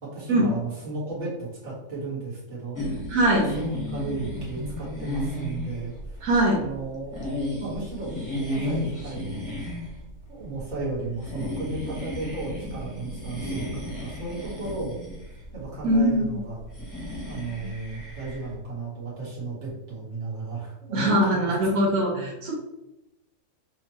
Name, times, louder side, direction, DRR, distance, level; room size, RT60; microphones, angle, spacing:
voice 1, 0.0-2.8 3.2-6.2 6.5-7.2 7.6-9.5 10.3-15.0 15.5-16.6 17.3-22.3, right 3 dB, 35° right, -8 dB, 1.7 m, -35 dB
sound 1, 2.7-18.5, left 1 dB, 15° left, 1.0 m, -34 dB
voice 2, 3.1-3.5 6.2-6.6 15.8-16.4 20.9-22.5, right 1 dB, 80° right, -3 dB, 1.6 m, -21 dB
5.7 x 2.4 x 3.1 m, 0.92 s
omnidirectional pair, 1.6 m